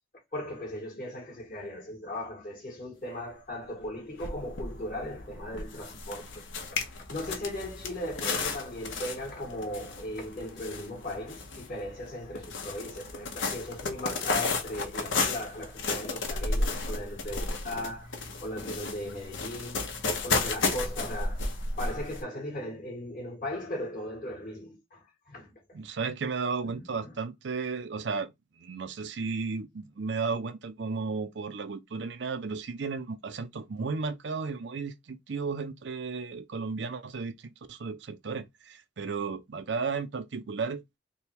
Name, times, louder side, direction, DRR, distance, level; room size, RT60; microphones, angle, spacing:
voice 1, 0.3-6.4 6.7-19.9 20.2-25.8 26.6-27.2, left 1 dB, 40° left, 1.3 m, -38 dB
sound 1, 3.8-3.9 4.2-22.2, left 3 dB, 85° left, 0.9 m, -33 dB
voice 2, 25.7-28.3 28.6-40.8, right 4 dB, 65° right, 0.5 m, -34 dB
3.4 x 2.3 x 4.4 m
head